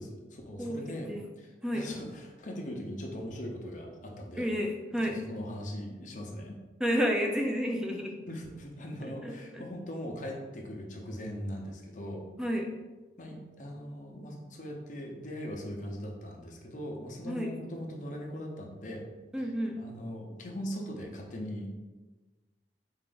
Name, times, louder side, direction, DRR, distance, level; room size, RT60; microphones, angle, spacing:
voice 1, 0.0-1.1 1.4-4.5 5.0-6.6 8.3-12.3 13.2-19.1 19.8-21.7, equal, 45° left, 0 dB, 0.7 m, -40 dB
voice 2, 4.4-5.2 6.8-8.2 9.2-9.6 12.4-12.7 17.2-17.5 19.3-19.8, equal, 5° right, 1 dB, 0.4 m, -30 dB
4.5 x 2.5 x 3.8 m, 1.2 s
head